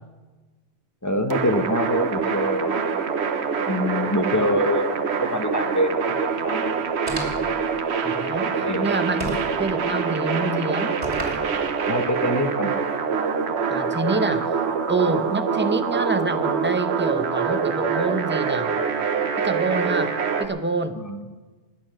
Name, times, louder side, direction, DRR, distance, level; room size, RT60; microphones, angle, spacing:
voice 1, 1.0-3.0 3.7-6.8 8.6-9.3 11.8-12.7 21.0-21.2, left 1 dB, 15° left, 6 dB, 0.8 m, -25 dB
sound 1, 1.3-20.5, right 5 dB, 60° right, 1.2 m, -25 dB
sound 2, 7.1-7.6 9.2-9.6 11.0-11.5, right 1 dB, 30° right, 3.1 m, -31 dB
voice 2, 8.0-9.2 9.6-10.9 13.7-14.6 14.9-18.8 19.4-21.0, right 3 dB, 15° right, 9 dB, 0.5 m, -27 dB
20.5 x 8.5 x 6.3 m, 1.3 s
omnidirectional pair, 1.3 m